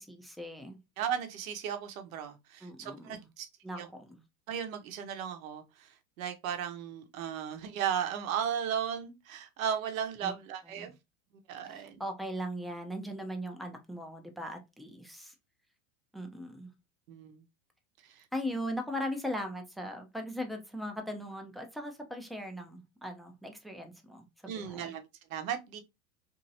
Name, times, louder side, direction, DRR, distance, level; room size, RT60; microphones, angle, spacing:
voice 1, 0.0-0.8 2.6-3.3 3.6-4.2 10.2-10.3 10.7-10.9 11.6-15.3 16.1-16.7 18.3-24.9, equal, ahead, 0.4 m, -39 dB
voice 2, 1.0-3.5 3.8-3.9 4.5-10.9 11.5-12.0 17.1-17.4 18.0-18.3 24.5-25.8, right 8 dB, 75° right, 0.9 m, -36 dB
2.9 x 2.6 x 2.6 m
hypercardioid pair, 100°, 41 cm